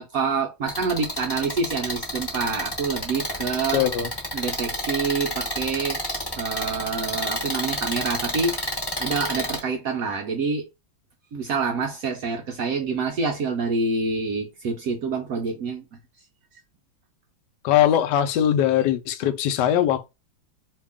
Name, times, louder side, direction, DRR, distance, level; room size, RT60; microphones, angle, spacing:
voice 1, 0.0-3.8 4.3-6.0 6.4-8.7 9.0-10.7 11.3-15.8, right 4 dB, 75° right, 0.7 m, -27 dB
sound 1, 0.7-9.6, equal, 15° left, 0.9 m, -29 dB
voice 2, 3.7-4.1 17.6-20.1, left 10 dB, 70° left, 1.1 m, -21 dB
2.9 x 2.8 x 3.4 m
omnidirectional pair, 2.2 m